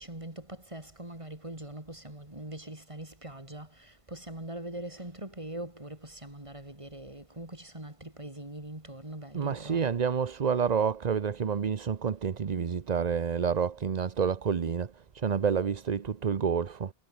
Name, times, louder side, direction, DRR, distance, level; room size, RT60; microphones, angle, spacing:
voice 1, 0.0-9.9, right 1 dB, 25° right, 4.1 m, -42 dB
voice 2, 9.3-16.9, right 6 dB, 40° right, 0.8 m, -29 dB
omnidirectional pair, 1.3 m